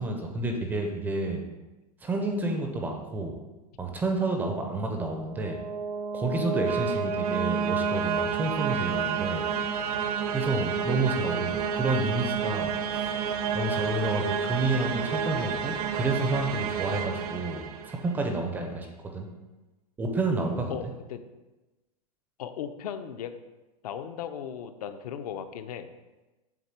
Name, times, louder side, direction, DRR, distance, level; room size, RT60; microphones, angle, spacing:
voice 1, 0.0-1.4 2.0-3.3 3.8-5.6 6.1-9.5 10.3-13.1 13.5-18.9 19.1-19.3 20.0-20.7, right 2 dB, 10° right, 3 dB, 0.4 m, -30 dB
sound 1, 5.2-18.2, right 6 dB, 70° right, 0.6 m, -30 dB
voice 2, 20.7-21.3 22.4-23.3 23.8-25.9, left 8 dB, 70° left, 9 dB, 0.6 m, -37 dB
7.4 x 3.3 x 5.9 m, 1.1 s
supercardioid pair, 165°, 20 cm